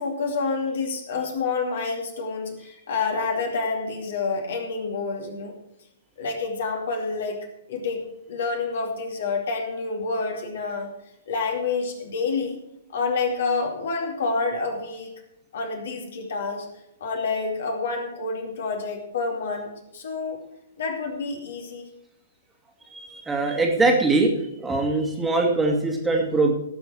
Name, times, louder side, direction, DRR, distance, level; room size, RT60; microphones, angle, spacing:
voice 1, 0.0-5.5 6.2-7.3 7.7-10.9 11.3-12.6 12.9-15.1 15.5-16.7 17.0-20.4 20.8-21.8, left 4 dB, 55° left, 3 dB, 2.6 m, -28 dB
voice 2, 22.9-24.3 24.6-26.5, right 3 dB, 10° right, 0 dB, 2.1 m, -22 dB
17.5 x 7.0 x 4.5 m, 0.84 s
figure-of-eight pair, 115°, 0 cm